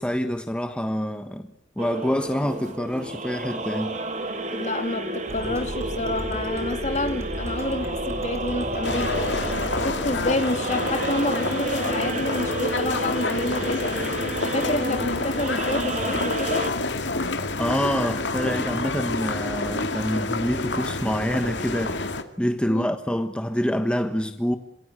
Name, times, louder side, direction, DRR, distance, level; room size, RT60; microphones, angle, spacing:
voice 1, 0.0-1.5 1.8-4.0 17.6-22.0 22.4-24.6, equal, 5° left, 1.3 m, -26 dB
sound 1, 1.8-16.7, right 2 dB, 40° right, 3.8 m, -31 dB
voice 2, 4.5-9.4 9.8-14.0 14.5-16.7 22.7-22.9, left 2 dB, 40° left, 2.3 m, -29 dB
sound 2, 5.3-10.3, equal, 15° right, 3.9 m, -35 dB
sound 3, 8.8-22.2, left 3 dB, 75° left, 2.4 m, -28 dB
27.5 x 20.0 x 8.0 m
head